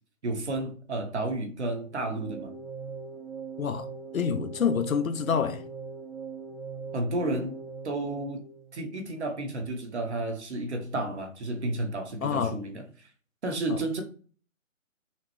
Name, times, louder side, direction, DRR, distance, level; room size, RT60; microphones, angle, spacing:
voice 1, 0.2-2.5 6.9-8.4 8.7-13.1 13.4-14.0, right 2 dB, 55° right, 1.1 m, -32 dB
sound 1, 1.9-9.1, right 5 dB, ahead, 0.3 m, -41 dB
voice 2, 4.1-5.6 12.2-12.6 13.7-13.8, left 7 dB, 90° left, 0.7 m, -27 dB
5.7 x 2.1 x 3.1 m
hypercardioid pair, 170°, 40 cm